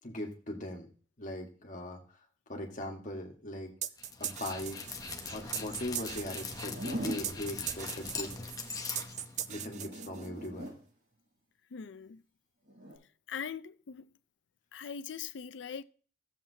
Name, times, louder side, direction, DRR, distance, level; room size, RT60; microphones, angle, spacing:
voice 1, 0.0-0.9 1.2-2.0 2.5-3.7 4.2-4.8 5.3-8.3 9.5-10.7, left 1 dB, 45° left, 1.6 m, -40 dB
sound 1, 3.8-10.5, right 10 dB, 40° right, 0.5 m, -40 dB
Dog, 4.0-9.8, left 4 dB, 20° left, 0.8 m, -41 dB
Zipper (clothing), 6.5-7.3 9.5-10.8 12.7-13.0, right 1 dB, 60° right, 5.6 m, -40 dB
voice 2, 11.7-12.2 13.3-14.1 14.7-15.8, left 7 dB, 75° left, 0.5 m, -41 dB
15.0 x 7.2 x 2.8 m
head